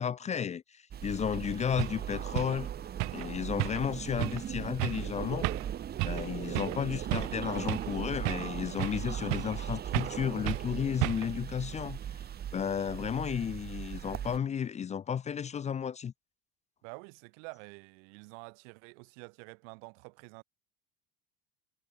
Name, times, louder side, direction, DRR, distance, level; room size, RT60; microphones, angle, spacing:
voice 1, 0.0-2.7 3.1-5.5 6.0-12.2 12.5-16.1, left 8 dB, 20° left, 0.6 m, -33 dB
sound 1, 0.9-14.4, right 9 dB, 25° right, 1.4 m, -38 dB
sound 2, 1.3-1.4 1.8-2.0 2.4-2.6 3.0-3.3 3.6-3.9 4.2-4.4 4.8-5.1 5.4-5.7 6.0-6.3 6.6-6.8 7.1-7.9 8.3-9.0 9.3-9.6 9.9-10.2 10.5-10.7 11.0-11.4, right 28 dB, 55° right, 0.7 m, -33 dB
voice 2, 16.8-20.4, right 36 dB, 80° right, 2.3 m, -48 dB
cardioid pair, 160°, 36 cm